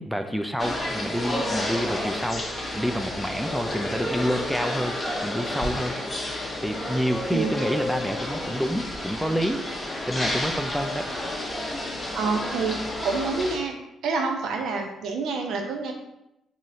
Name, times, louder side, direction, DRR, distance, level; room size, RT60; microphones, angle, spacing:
voice 1, 0.0-2.4 2.7-5.0 5.2-6.0 6.6-9.6 10.1-11.1, equal, ahead, 6 dB, 0.3 m, -28 dB
star trek lobby, 0.6-13.6, left 1 dB, 20° left, 0.9 m, -30 dB
voice 2, 12.1-13.7 14.0-15.9, right 4 dB, 75° right, 3 dB, 0.6 m, -27 dB
3.9 x 3.0 x 2.6 m, 0.86 s
cardioid pair, 90°, 0 cm